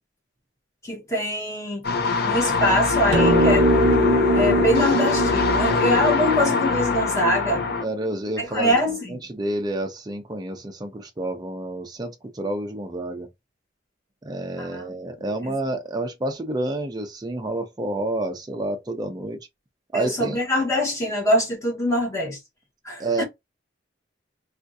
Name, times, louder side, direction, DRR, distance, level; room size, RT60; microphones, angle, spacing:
voice 1, 0.8-1.9 2.2-3.7 4.3-7.6 8.4-9.2 14.6-14.9 15.4-15.5 19.9-22.4 22.8-23.2, equal, 15° left, 1.2 m, -24 dB
sound 1, 1.8-7.8, left 4 dB, 55° left, 0.6 m, -23 dB
sound 2, 3.1-7.7, right 1 dB, 65° right, 0.6 m, -22 dB
voice 2, 7.8-8.8 9.1-13.3 14.2-19.4 19.9-20.4 23.0-23.2, right 1 dB, 20° right, 0.5 m, -29 dB
3.5 x 2.4 x 2.6 m
head